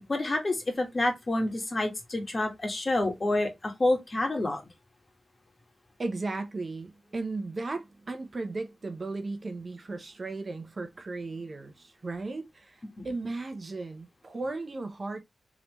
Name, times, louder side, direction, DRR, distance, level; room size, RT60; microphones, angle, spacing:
voice 1, 0.1-4.6 13.0-13.1, left 2 dB, 40° left, 1.7 m, -28 dB
voice 2, 6.0-15.2, right 3 dB, 50° right, 0.9 m, -36 dB
3.8 x 3.3 x 3.1 m
cardioid pair, 55°, 0 cm